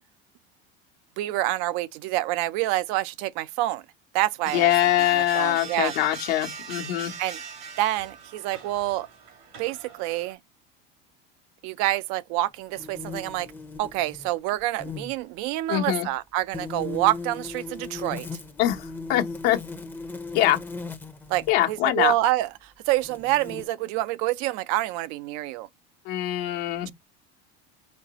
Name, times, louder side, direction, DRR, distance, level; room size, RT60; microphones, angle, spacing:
voice 1, 1.2-3.8 4.1-4.7 5.1-5.9 7.2-7.4 7.8-9.1 9.6-10.4 11.6-13.5 13.8-18.3 21.3-25.7, right 15 dB, 65° right, 0.5 m, -27 dB
sound 1, 4.4-10.3, right 5 dB, 85° right, 2.3 m, -41 dB
voice 2, 4.5-7.1 15.7-16.1 18.6-19.6 20.3-20.6 21.5-22.1 26.0-26.9, left 13 dB, 80° left, 1.0 m, -23 dB
sound 2, 12.8-14.3 14.6-15.1 16.5-21.5 22.4-22.5 23.0-23.7, left 3 dB, 5° left, 0.6 m, -37 dB
4.3 x 2.9 x 2.8 m
supercardioid pair, 100°, 30 cm